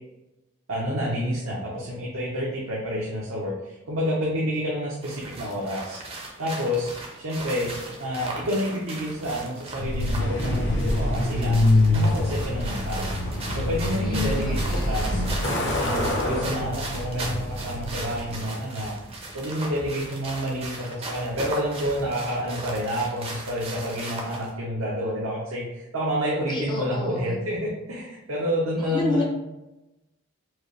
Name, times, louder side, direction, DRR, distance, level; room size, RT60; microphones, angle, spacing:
voice 1, 0.7-6.0 6.4-6.9 7.2-7.7 8.0-11.6 11.9-15.2 16.2-18.9 19.3-29.2, equal, 80° right, -5 dB, 0.8 m, -29 dB
sound 1, 5.0-24.5, right 2 dB, 25° right, 0.6 m, -38 dB
Truck, 9.8-18.5, left 1 dB, 60° left, 0.9 m, -25 dB
voice 2, 14.0-15.2 26.5-27.4 28.8-29.2, left 2 dB, 20° left, -1 dB, 0.5 m, -30 dB
4.6 x 2.4 x 3.2 m, 0.97 s
head